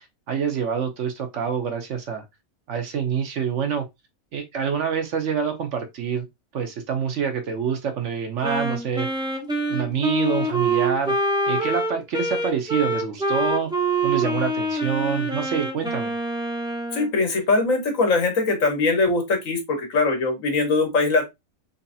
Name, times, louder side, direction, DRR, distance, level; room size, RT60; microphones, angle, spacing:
voice 1, 0.0-2.2 2.7-3.9 4.3-6.3 6.5-9.1 9.7-11.2 11.5-13.7 14.0-16.1, right 7 dB, 60° right, 1.0 m, -26 dB
Wind instrument woodwind instrument, 8.4-17.1, right 2 dB, 5° right, 0.5 m, -25 dB
voice 2, 16.9-21.3, left 3 dB, 65° left, 1.5 m, -21 dB
3.9 x 3.2 x 2.7 m
omnidirectional pair, 1.5 m